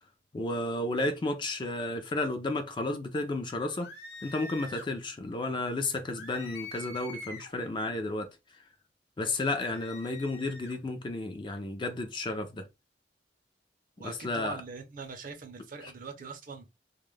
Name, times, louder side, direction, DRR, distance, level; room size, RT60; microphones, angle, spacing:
voice 1, 0.3-3.9 4.2-8.3 9.2-12.7 14.0-14.6 15.8-15.9, left 2 dB, 25° left, 0.4 m, -32 dB
sound 1, 3.7-4.9 6.1-7.6 9.5-10.8, left 2 dB, 70° left, 0.9 m, -45 dB
voice 2, 14.0-16.7, right 4 dB, 50° right, 0.6 m, -42 dB
2.3 x 2.1 x 3.1 m
head